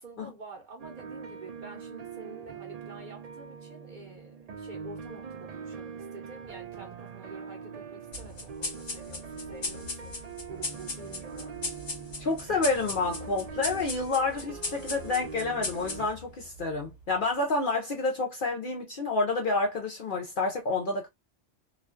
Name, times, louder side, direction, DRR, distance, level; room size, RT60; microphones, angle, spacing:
voice 1, 0.0-10.2 10.5-11.6, right 3 dB, 50° right, 0.7 m, -48 dB
sound 1, 0.8-16.1, right 6 dB, 75° right, 0.3 m, -43 dB
sound 2, 8.1-17.0, left 3 dB, 40° left, 1.0 m, -38 dB
voice 2, 12.2-21.1, left 3 dB, 60° left, 0.6 m, -29 dB
2.4 x 2.2 x 2.3 m
omnidirectional pair, 1.3 m